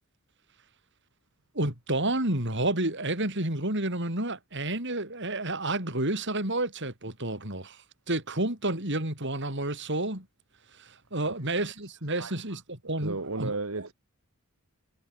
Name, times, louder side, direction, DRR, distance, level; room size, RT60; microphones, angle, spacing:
voice 1, 1.5-7.8 8.1-10.3 10.8-13.9, right 2 dB, 55° right, 7.7 m, -30 dB
voice 2, 11.2-12.3 12.8-13.9, right 3 dB, 75° right, 2.0 m, -36 dB
head